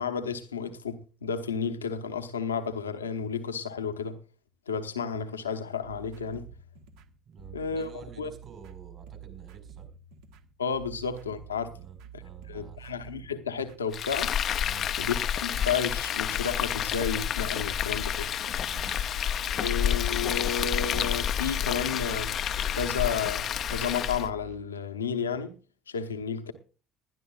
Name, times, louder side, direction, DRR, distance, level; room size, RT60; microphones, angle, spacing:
voice 1, 0.0-4.2 4.7-6.4 7.5-7.9 8.2-8.3 10.6-11.7 12.5-14.3 15.0-18.3 19.6-22.4 22.7-25.5 25.9-26.5, left 6 dB, 85° left, 1.0 m, -32 dB
sound 1, 5.8-24.6, right 9 dB, 65° right, 1.2 m, -48 dB
voice 2, 7.3-9.9 11.7-12.9 14.6-14.9 18.6-19.1, right 6 dB, 45° right, 4.5 m, -49 dB
Frying (food), 13.9-24.3, left 9 dB, 50° left, 0.6 m, -29 dB
20.5 x 12.0 x 2.4 m
figure-of-eight pair, 55°, 0 cm